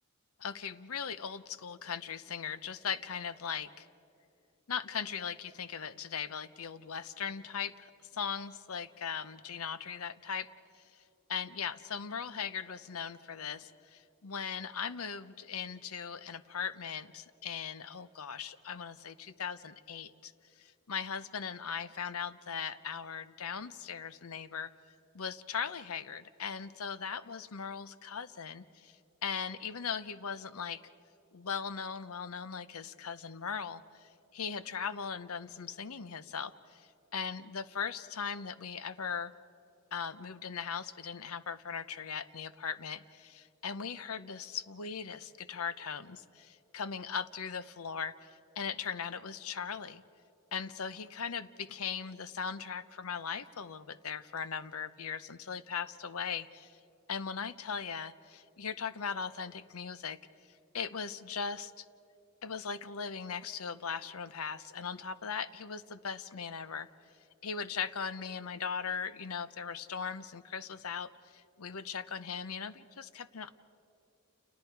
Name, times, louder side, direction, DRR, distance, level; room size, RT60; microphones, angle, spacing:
voice 1, 0.4-3.9 4.7-10.5 10.7-10.8 11.3-20.3 20.6-24.7 25.1-28.9 29.2-30.8 31.3-39.3 39.9-48.3 48.6-50.0 50.5-56.7 57.1-60.2 60.7-61.8 62.4-66.9 67.4-73.5, left 6 dB, 75° left, 14 dB, 0.7 m, -39 dB
29.5 x 29.5 x 4.7 m, 2.7 s
head